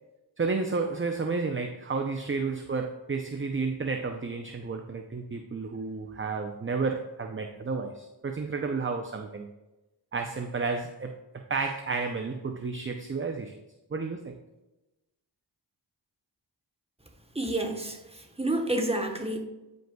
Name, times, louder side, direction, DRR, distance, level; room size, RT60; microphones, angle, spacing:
voice 1, 0.4-9.5 10.1-11.1 11.5-13.5 13.9-14.4, right 4 dB, 30° right, 4 dB, 0.5 m, -31 dB
voice 2, 17.3-19.4, right 1 dB, 15° right, 2 dB, 1.0 m, -29 dB
9.1 x 5.2 x 2.2 m, 1.0 s
wide cardioid pair, 45°, 44 cm